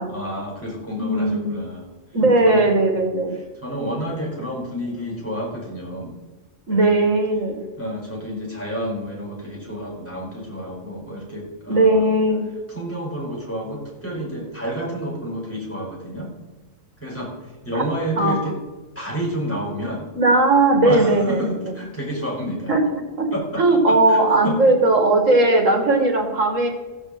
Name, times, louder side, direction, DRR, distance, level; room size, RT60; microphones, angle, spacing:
voice 1, 0.0-1.9 2.4-2.7 3.3-6.1 6.7-7.0 7.8-12.1 12.7-16.3 17.0-17.3 17.6-18.6 18.9-20.1 20.8-21.5 21.7-22.7 23.3-24.5, equal, 10° left, -4 dB, 4.7 m, -30 dB
voice 2, 1.0-1.6 2.1-3.3 6.7-7.6 11.7-12.5 17.7-17.8 18.2-18.5 20.2-21.6 22.7-22.8 23.2-23.3 23.6-26.7, right 2 dB, 75° right, 3 dB, 2.6 m, -18 dB
15.5 x 5.3 x 7.8 m, 1.2 s
omnidirectional pair, 1.3 m